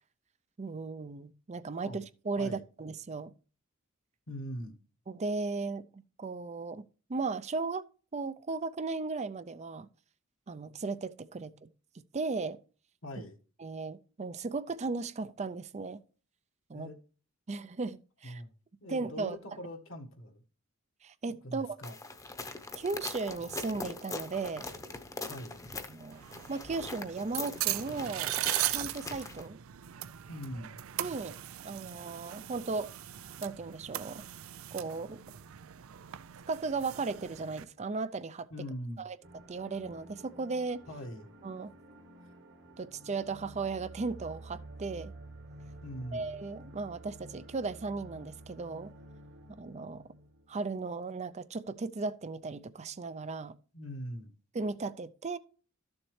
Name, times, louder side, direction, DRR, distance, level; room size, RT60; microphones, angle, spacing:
voice 1, 0.6-3.3 5.1-6.8 7.1-7.8 8.1-9.9 10.5-11.7 12.1-12.6 13.6-16.0 16.7-16.9 17.5-18.4 18.9-19.4 21.0-21.7 22.8-24.7 25.9-26.2 26.5-28.3 28.7-29.6 31.0-31.4 31.6-32.9 33.4-34.2 34.7-35.2 36.5-38.5 39.0-39.2 39.5-40.8 41.4-41.7 42.8-45.1 46.1-48.9 49.6-50.0 50.5-53.5 54.5-55.4, right 4 dB, 35° right, 0.5 m, -36 dB
voice 2, 4.3-4.8 13.0-13.4 16.7-17.0 18.2-18.5 18.8-20.4 21.4-21.9 25.3-25.6 30.3-30.7 38.5-39.0 40.9-41.3 45.8-46.2 53.7-54.3, equal, 70° left, 1.6 m, -41 dB
sound 1, 21.8-29.5, left 3 dB, 15° left, 0.9 m, -42 dB
sound 2, 26.1-37.6, right 14 dB, 90° right, 0.5 m, -39 dB
sound 3, 39.2-51.1, right 2 dB, 60° right, 1.6 m, -51 dB
13.0 x 7.1 x 3.2 m
head